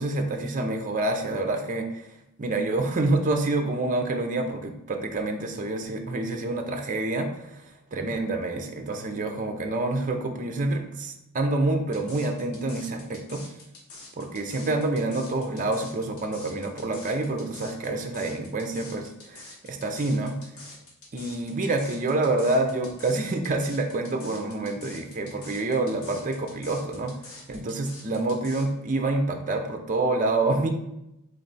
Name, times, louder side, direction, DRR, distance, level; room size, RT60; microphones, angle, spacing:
voice 1, 0.0-2.0 2.4-7.6 7.9-13.4 14.2-20.4 21.1-30.7, right 2 dB, 35° right, 5 dB, 0.5 m, -27 dB
sound 1, 11.9-28.7, left 3 dB, 75° left, 1.1 m, -46 dB
3.9 x 3.2 x 4.0 m, 0.84 s
head